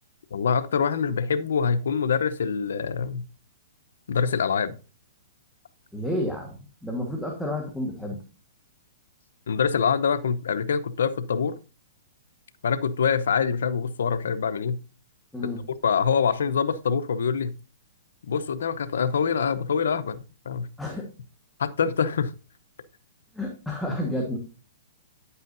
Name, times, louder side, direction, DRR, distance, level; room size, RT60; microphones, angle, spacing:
voice 1, 0.3-3.2 4.1-4.8 9.5-11.5 12.6-14.8 15.8-17.5 18.3-20.2 20.5-20.7 21.6-22.3, left 6 dB, 85° left, 0.7 m, -25 dB
voice 2, 5.9-8.2 15.3-15.6 20.8-21.0 23.3-24.4, left 1 dB, ahead, 1.4 m, -30 dB
10.0 x 8.2 x 2.6 m
hypercardioid pair, 150°, 0 cm